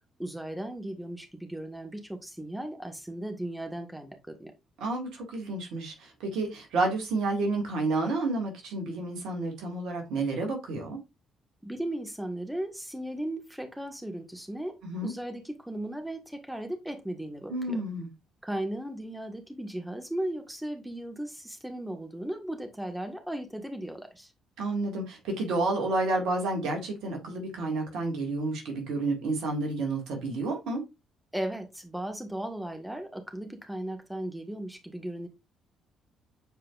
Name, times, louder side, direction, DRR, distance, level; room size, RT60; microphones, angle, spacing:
voice 1, 0.2-4.5 11.6-14.7 15.0-17.8 18.4-24.3 31.3-35.3, right 1 dB, 5° right, 1.7 m, -36 dB
voice 2, 4.8-11.0 14.8-15.1 17.5-18.1 24.6-30.8, right 2 dB, 65° right, 2.2 m, -30 dB
7.9 x 4.7 x 2.5 m
figure-of-eight pair, 45°, 0 cm